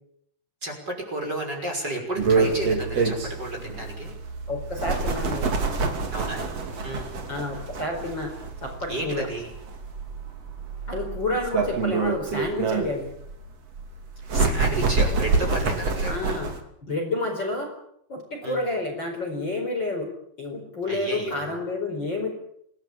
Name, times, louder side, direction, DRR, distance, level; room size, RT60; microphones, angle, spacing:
voice 1, 0.6-4.1 6.1-6.5 6.8-7.1 8.9-9.5 14.3-16.5 18.4-18.6 20.9-21.6, right 1 dB, 25° right, 1 dB, 6.4 m, -32 dB
sound 1, 2.2-16.6, right 4 dB, 40° right, 3.4 m, -27 dB
voice 2, 4.5-5.5 7.3-8.3 8.6-9.3 10.9-13.1 16.1-16.5 16.9-17.7 18.1-20.1 20.4-22.3, left 2 dB, 25° left, 2 dB, 5.1 m, -29 dB
27.5 x 18.0 x 8.7 m, 0.72 s
omnidirectional pair, 4.8 m